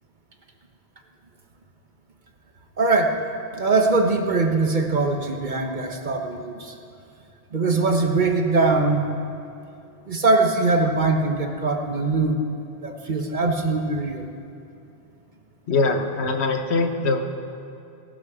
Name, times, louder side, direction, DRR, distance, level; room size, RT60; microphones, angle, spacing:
voice 1, 2.8-3.2 3.5-6.8 7.5-9.0 10.1-12.4 12.8-14.3, right 3 dB, 45° right, 4 dB, 1.2 m, -22 dB
voice 2, 15.7-17.2, left 3 dB, 75° left, 5 dB, 1.3 m, -22 dB
18.5 x 12.0 x 4.9 m, 2.7 s
omnidirectional pair, 1.1 m